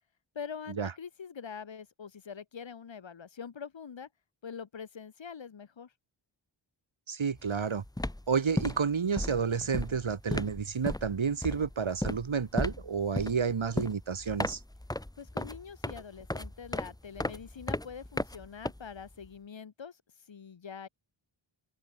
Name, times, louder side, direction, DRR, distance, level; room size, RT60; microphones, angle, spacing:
voice 1, 0.3-4.1 4.4-5.9 15.2-20.0 20.3-20.9, left 6 dB, 65° left, 1.2 m, -44 dB
voice 2, 7.1-7.8 8.3-14.6, right 6 dB, 70° right, 1.7 m, -30 dB
sound 1, 7.4-7.6 7.8-19.3, left 1 dB, 10° left, 1.1 m, -36 dB
wide cardioid pair, 75°, 49 cm